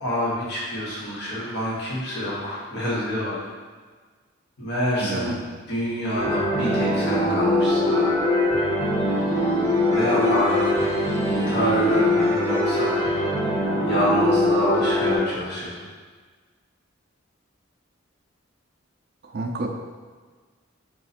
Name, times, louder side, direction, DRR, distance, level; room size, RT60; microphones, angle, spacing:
voice 1, 0.0-3.5 4.6-5.4 5.7-8.3 9.9-10.8 11.2-12.9 13.8-15.8, left 1 dB, 50° left, -7 dB, 1.2 m, -27 dB
voice 2, 5.0-5.4 19.2-19.7, right 2 dB, 50° right, 3 dB, 0.4 m, -29 dB
sound 1, 6.2-15.2, left 1 dB, 15° left, 1.2 m, -22 dB
3.9 x 2.4 x 4.2 m, 1.5 s
head